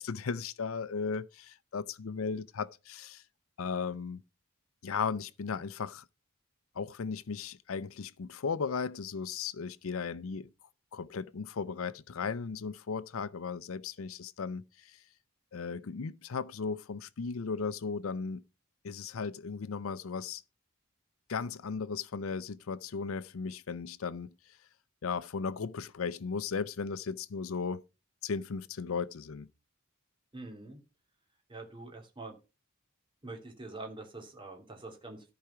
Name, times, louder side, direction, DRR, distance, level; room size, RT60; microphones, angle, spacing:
voice 1, 0.0-3.2 3.6-4.2 4.8-6.0 6.8-10.5 10.9-15.0 15.5-18.4 18.8-20.4 21.3-24.3 25.0-27.8 28.2-29.5, left 5 dB, 70° left, 0.5 m, -36 dB
voice 2, 30.3-30.8 31.5-32.4 33.2-35.3, right 2 dB, 25° right, 2.8 m, -45 dB
13.5 x 4.9 x 5.8 m
head